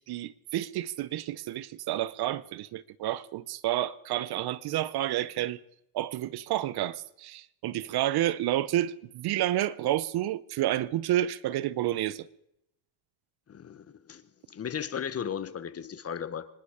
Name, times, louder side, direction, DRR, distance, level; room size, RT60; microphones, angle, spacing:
voice 1, 0.0-5.6 5.9-12.3, right 13 dB, 55° right, 0.8 m, -30 dB
voice 2, 13.5-14.2 14.5-16.5, left 8 dB, 30° left, 1.1 m, -36 dB
25.5 x 11.0 x 4.9 m
cardioid pair, 115°, 47 cm